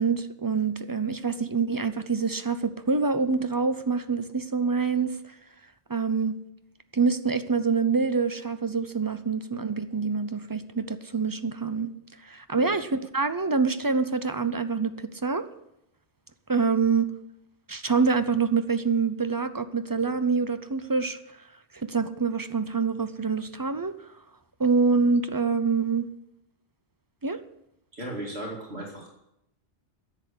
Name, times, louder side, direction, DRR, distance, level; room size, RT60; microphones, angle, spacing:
voice 1, 0.0-5.2 5.9-6.4 6.9-11.9 12.2-15.5 16.5-17.1 17.7-21.4 21.7-24.1 24.6-26.0 27.2-27.4, right 4 dB, 25° right, 11 dB, 0.5 m, -26 dB
voice 2, 27.9-29.1, right 1 dB, 65° right, -2 dB, 2.7 m, -36 dB
10.5 x 8.0 x 8.4 m, 0.82 s
omnidirectional pair, 1.2 m